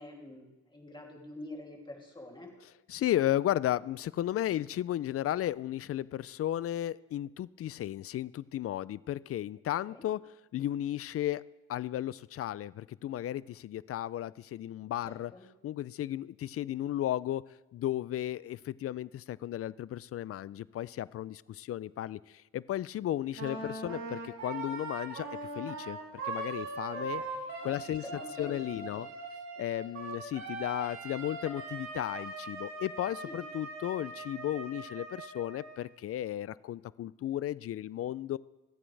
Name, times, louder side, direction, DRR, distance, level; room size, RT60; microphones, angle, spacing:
voice 1, 0.0-2.5 9.9-10.0 15.1-15.5 23.5-24.0 27.1-29.0 33.2-33.4, left 2 dB, 15° left, 0 dB, 2.8 m, -47 dB
voice 2, 2.9-10.2 10.5-11.4 11.7-15.3 15.6-17.4 17.7-25.3 25.5-26.0 26.2-27.2 27.6-28.0 28.4-29.1 29.6-38.4, left 12 dB, 50° left, 20 dB, 0.4 m, -34 dB
Wind instrument woodwind instrument, 23.3-35.8, right 3 dB, 65° right, 3.7 m, -41 dB
25.0 x 8.6 x 3.3 m, 1.1 s
cardioid pair, 90°, 30 cm